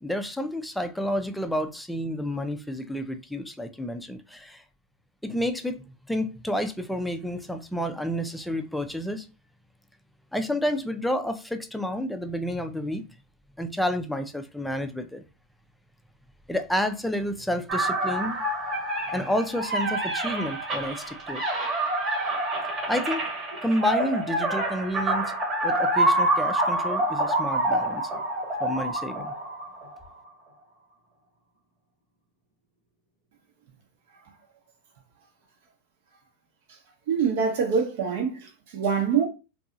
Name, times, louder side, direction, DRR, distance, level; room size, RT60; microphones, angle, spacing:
voice 1, 0.0-4.6 5.2-9.3 10.3-13.0 13.6-15.2 16.5-18.4 19.0-21.4 22.9-23.2 23.6-25.3 25.6-28.1 28.6-29.3, left 1 dB, 5° left, 0.4 m, -30 dB
sound 1, 17.7-30.0, right 1 dB, 30° right, 1.0 m, -27 dB
voice 2, 37.1-39.2, right 6 dB, 70° right, 0.9 m, -25 dB
2.7 x 2.3 x 2.4 m
supercardioid pair, 120°, 0 cm